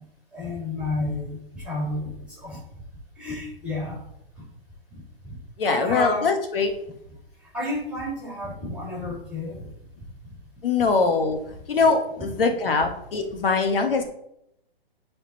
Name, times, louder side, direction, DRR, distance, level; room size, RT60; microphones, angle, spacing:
voice 1, 0.3-2.6 3.2-4.0 5.2-5.4 5.6-6.3 7.5-9.7, left 1 dB, 5° right, -6 dB, 3.0 m, -31 dB
voice 2, 5.6-6.7 10.6-14.0, left 4 dB, 65° left, 5 dB, 1.9 m, -22 dB
11.0 x 4.5 x 4.2 m, 0.77 s
hypercardioid pair, 145°, 30 cm